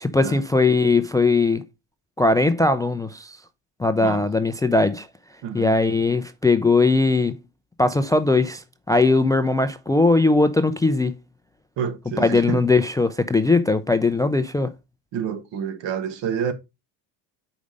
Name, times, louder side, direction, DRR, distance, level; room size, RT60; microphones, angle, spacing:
voice 1, 0.0-1.6 2.2-3.4 3.8-5.1 5.5-7.4 7.8-11.1 12.2-14.7, left 3 dB, 10° left, 0.3 m, -19 dB
voice 2, 5.4-5.8 11.8-12.6 15.1-16.5, right 7 dB, 70° right, 1.6 m, -28 dB
5.1 x 5.0 x 5.1 m
supercardioid pair, 95°, 45 cm